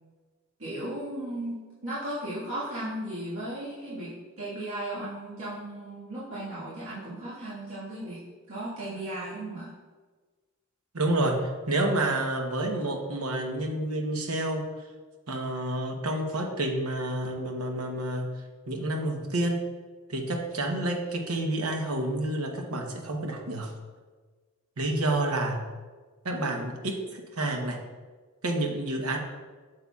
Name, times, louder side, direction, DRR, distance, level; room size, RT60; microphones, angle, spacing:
voice 1, 0.6-1.6 1.8-8.2 8.5-9.7, right 1 dB, 65° right, -11 dB, 1.7 m, -36 dB
voice 2, 10.9-14.6 15.3-18.3 18.7-19.6 20.1-23.7 24.8-25.6 26.2-27.8 28.4-29.2, right 1 dB, 85° right, 3 dB, 1.0 m, -29 dB
8.1 x 6.8 x 2.4 m, 1.4 s
head